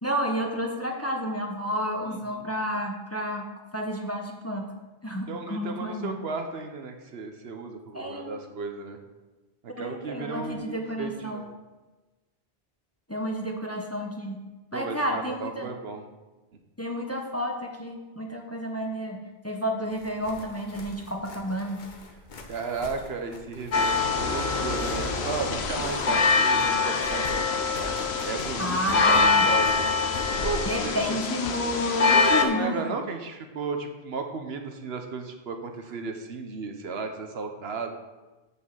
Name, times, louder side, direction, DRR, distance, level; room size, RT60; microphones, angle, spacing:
voice 1, 0.0-3.5 3.7-4.7 5.0-6.2 7.9-8.3 9.8-11.5 13.1-14.4 14.7-15.7 16.8-21.8 28.6-29.5 30.7-33.0, equal, 15° left, 2 dB, 0.8 m, -30 dB
voice 2, 2.0-2.5 5.3-9.0 9.6-11.5 14.7-16.0 22.5-27.6 28.2-28.8 29.1-29.9 30.4-30.9 32.1-37.9, right 4 dB, 75° right, 5 dB, 1.1 m, -34 dB
sound 1, 19.9-26.3 26.6-30.7, left 2 dB, 50° left, 1.0 m, -38 dB
sound 2, 23.7-32.4, left 4 dB, 80° left, 1.0 m, -24 dB
6.4 x 5.5 x 7.1 m, 1.2 s
omnidirectional pair, 1.1 m